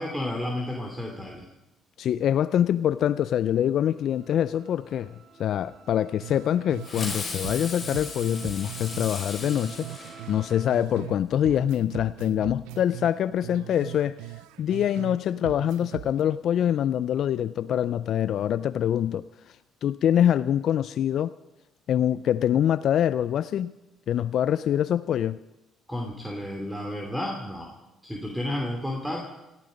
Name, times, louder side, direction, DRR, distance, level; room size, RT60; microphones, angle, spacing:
voice 1, 0.0-1.5 25.9-27.7 28.0-29.2, left 1 dB, 5° right, 1 dB, 2.9 m, -31 dB
voice 2, 2.0-5.1 5.4-9.9 10.3-14.2 14.6-19.6 19.8-21.3 21.9-23.7 24.1-25.4, left 10 dB, 60° left, 15 dB, 0.4 m, -25 dB
sound 1, 3.9-10.7, right 5 dB, 55° right, 2.7 m, -50 dB
sound 2, 6.2-7.2 7.4-11.2 11.4-15.2 15.4-16.2, right 17 dB, 85° right, 0.4 m, -40 dB
Fireworks, 6.8-10.7, left 4 dB, 35° left, 5.2 m, -37 dB
17.5 x 14.0 x 5.2 m, 0.96 s
supercardioid pair, 70°, 0 cm